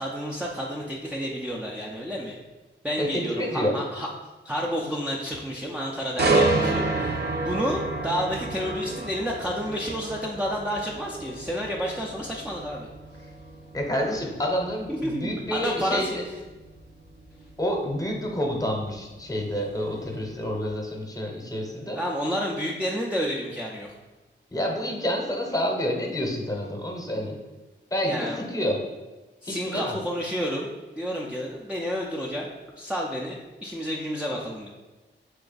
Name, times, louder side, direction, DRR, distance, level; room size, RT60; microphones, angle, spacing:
voice 1, 0.0-2.4 2.8-4.1 4.4-12.9 14.9-16.2 22.0-23.9 28.0-28.4 29.4-30.7 31.0-34.7, equal, 5° right, -3 dB, 0.4 m, -30 dB
voice 2, 3.0-3.8 13.7-16.2 17.6-22.0 24.5-27.4 27.9-28.8 29.4-30.0, equal, 15° left, 0 dB, 0.9 m, -28 dB
sound 1, 6.2-20.0 20.4-20.7, right 3 dB, 55° right, 0.7 m, -30 dB
3.7 x 3.4 x 3.9 m, 1.2 s
wide cardioid pair, 90°, 20 cm